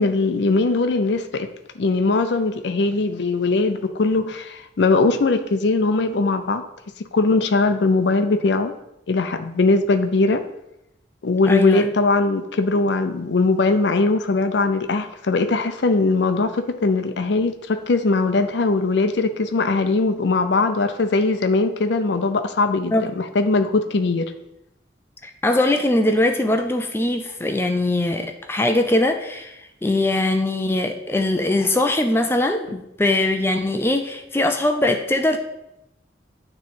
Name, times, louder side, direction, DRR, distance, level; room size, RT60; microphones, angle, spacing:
voice 1, 0.0-1.5 1.8-6.6 7.1-8.7 9.1-10.4 11.2-24.3, left 3 dB, 70° left, 8 dB, 0.5 m, -20 dB
voice 2, 11.4-11.9 22.9-23.1 25.2-35.4, left 1 dB, 15° left, 5 dB, 0.4 m, -21 dB
9.5 x 3.2 x 4.5 m, 0.85 s
head